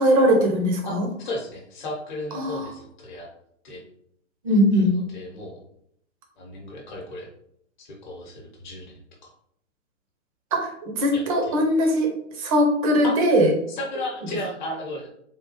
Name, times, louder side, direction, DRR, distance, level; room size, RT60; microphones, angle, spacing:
voice 1, 0.0-1.1 2.3-2.7 4.4-4.9 10.5-12.1 12.4-13.5, equal, 30° right, 2 dB, 0.7 m, -20 dB
voice 2, 0.8-3.3 3.6-3.8 4.7-5.6 6.4-7.3 7.8-8.9 9.2-9.3 11.1-11.6 13.0-13.2 13.7-15.1, left 1 dB, 35° left, -1 dB, 1.0 m, -35 dB
3.5 x 2.3 x 2.9 m, 0.71 s
figure-of-eight pair, 125°, 38 cm